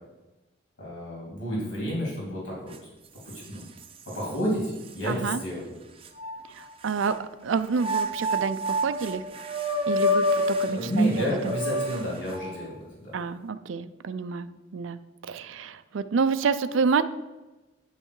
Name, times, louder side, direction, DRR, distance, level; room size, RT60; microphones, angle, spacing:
voice 1, 0.8-2.7 3.2-3.6 4.1-5.7 10.6-13.1, equal, 85° left, -5 dB, 3.3 m, -30 dB
sound 1, 2.7-2.8 3.3-4.2 4.8-4.9 6.0-7.2 7.7-12.7, left 1 dB, 30° right, 0.7 m, -28 dB
voice 2, 5.0-5.4 6.6-9.2 9.9-11.5 13.1-17.0, right 5 dB, 90° right, 12 dB, 0.4 m, -28 dB
9.8 x 5.5 x 4.8 m, 1.1 s
head